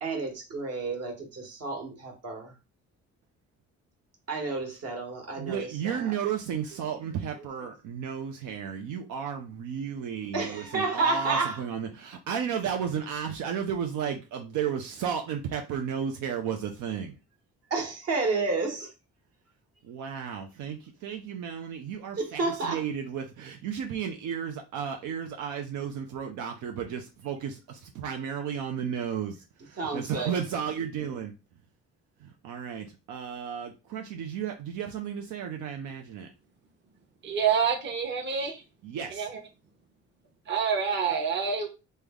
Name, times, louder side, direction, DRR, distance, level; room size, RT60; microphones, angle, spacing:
voice 1, 0.0-2.5 4.3-6.1 10.3-11.6 17.7-18.9 22.1-22.8 29.8-30.3, right 3 dB, 55° right, 1.2 m, -30 dB
voice 2, 5.4-17.2 19.8-31.3 32.2-36.3 38.8-39.3, right 8 dB, 80° right, 0.5 m, -33 dB
voice 3, 37.2-38.6 39.1-39.4 40.5-41.7, right 6 dB, 35° right, 0.9 m, -27 dB
3.3 x 2.1 x 3.5 m
cardioid pair, 90°, 30 cm